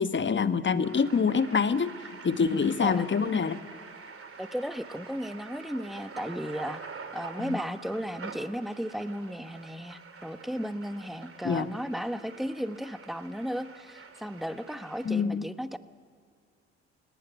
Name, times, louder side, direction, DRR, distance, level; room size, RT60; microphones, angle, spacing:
voice 1, 0.0-1.9 2.2-3.6 7.4-7.6 11.4-11.7 15.0-15.4, left 5 dB, 30° left, 11 dB, 1.4 m, -26 dB
sound 1, 0.8-15.2, right 5 dB, 35° right, 3.2 m, -46 dB
voice 2, 4.4-6.8 7.1-15.8, equal, ahead, 11 dB, 1.3 m, -35 dB
28.5 x 19.0 x 8.4 m, 2.2 s
hypercardioid pair, 50°, 36 cm